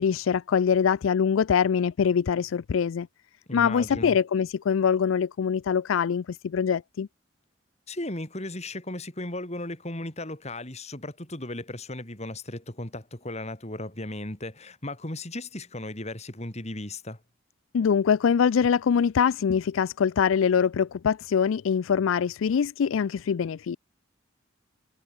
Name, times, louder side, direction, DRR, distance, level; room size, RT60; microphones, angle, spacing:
voice 1, 0.0-3.1 3.5-7.1 17.7-23.8, left 7 dB, 90° left, 0.4 m, -23 dB
voice 2, 3.5-4.2 7.9-17.2, left 1 dB, 35° left, 3.4 m, -36 dB
head